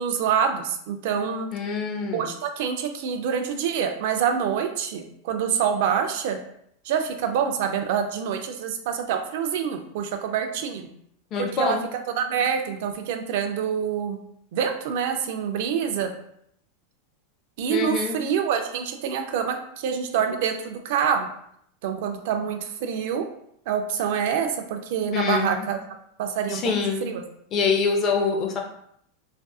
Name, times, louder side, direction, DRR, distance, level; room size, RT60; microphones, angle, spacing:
voice 1, 0.0-1.5 2.1-6.4 6.8-10.9 11.4-11.8 12.2-14.2 14.5-16.1 17.6-21.3 21.8-23.2 23.7-25.8 26.2-26.6 27.0-27.2, right 7 dB, 60° right, 6 dB, 0.4 m, -26 dB
voice 2, 1.5-2.3 11.3-11.8 17.7-18.2 25.1-25.7 26.5-27.0 27.5-28.6, left 5 dB, 30° left, 2 dB, 0.5 m, -25 dB
2.5 x 2.4 x 2.3 m, 0.70 s
supercardioid pair, 150°, 0 cm